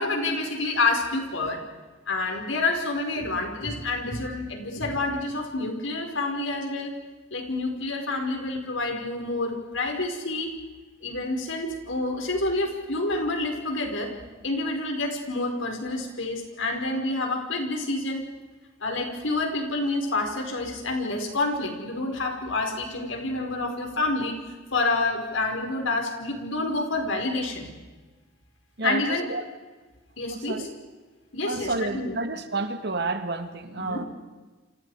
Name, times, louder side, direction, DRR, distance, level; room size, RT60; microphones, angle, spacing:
voice 1, 0.0-1.6 2.1-6.9 7.3-10.5 11.0-14.1 14.4-18.2 18.8-24.4 24.7-27.7 28.8-29.3 30.2-30.7 31.3-32.2 33.7-34.0, left 2 dB, 85° left, 3 dB, 5.0 m, -28 dB
voice 2, 28.8-29.4 30.3-30.7 31.5-34.0, right 3 dB, 60° right, 7 dB, 2.1 m, -30 dB
30.0 x 26.0 x 5.0 m, 1.3 s
head